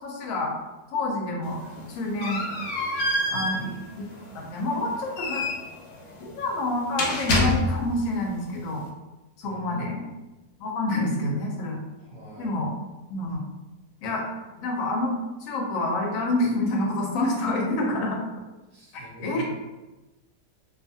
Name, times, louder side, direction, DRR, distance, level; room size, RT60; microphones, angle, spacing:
voice 1, 0.0-0.5 0.9-1.6 1.9-2.4 3.3-4.1 4.3-5.4 6.2-8.8 9.4-10.0 10.6-11.8 12.4-12.7 13.1-13.5 14.0-14.2 14.6-15.1 15.4-18.2 18.9-19.4, left 2 dB, 65° left, -1 dB, 1.0 m, -27 dB
sound 1, 1.4-8.1, left 1 dB, 85° left, 1.2 m, -28 dB
voice 2, 9.4-10.2 12.0-12.6 18.7-19.4, right 1 dB, 55° right, -5 dB, 0.8 m, -43 dB
2.6 x 2.4 x 2.6 m, 1.1 s
omnidirectional pair, 1.7 m